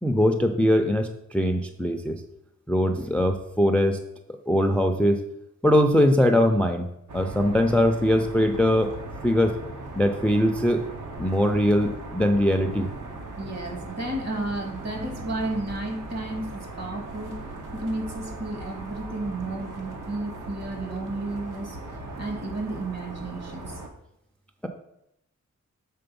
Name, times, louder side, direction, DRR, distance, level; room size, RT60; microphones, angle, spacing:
voice 1, 0.0-2.2 2.7-4.0 4.5-5.2 5.6-6.9 7.1-8.9 9.2-9.5 10.0-10.8 11.2-12.9, left 1 dB, 5° left, 6 dB, 0.4 m, -21 dB
sound 1, 7.1-23.9, right 2 dB, 85° right, 1.1 m, -38 dB
voice 2, 13.4-17.3 17.7-23.8, right 2 dB, 60° right, 2 dB, 1.6 m, -32 dB
6.8 x 3.8 x 5.2 m, 0.81 s
wide cardioid pair, 155°, 30 cm